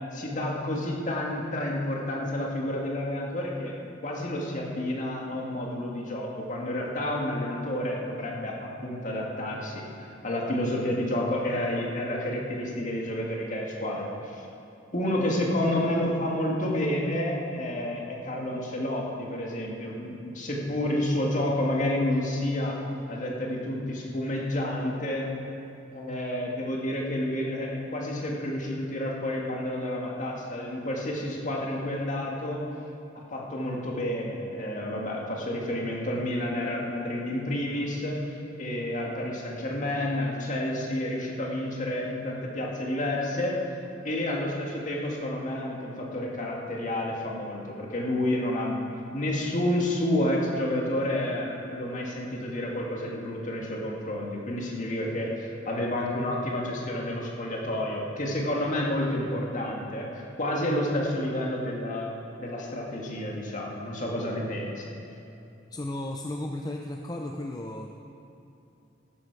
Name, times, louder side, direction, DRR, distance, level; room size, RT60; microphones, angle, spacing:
voice 1, 0.1-3.7 4.0-14.5 14.9-22.8 23.1-25.3 25.9-32.6 33.3-43.6 44.0-48.8 49.1-62.1 62.4-64.9, left 1 dB, 45° left, -2 dB, 2.0 m, -30 dB
voice 2, 65.7-68.1, left 1 dB, 20° left, 2 dB, 0.6 m, -35 dB
14.0 x 12.0 x 4.8 m, 2.8 s
head